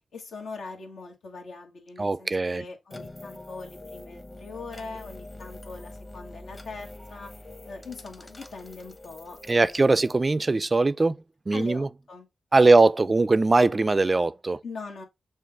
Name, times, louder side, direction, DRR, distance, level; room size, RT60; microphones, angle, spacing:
voice 1, 0.1-7.3 7.7-9.9 11.5-12.3 12.5-12.7 14.6-15.0, left 4 dB, 85° left, 1.4 m, -41 dB
voice 2, 2.0-2.6 9.5-11.2 11.5-11.9 12.5-14.6, right 3 dB, 35° right, 0.4 m, -21 dB
sound 1, 2.9-10.2, left 2 dB, 25° left, 0.9 m, -44 dB
6.2 x 2.5 x 3.4 m
cardioid pair, 55°, 0 cm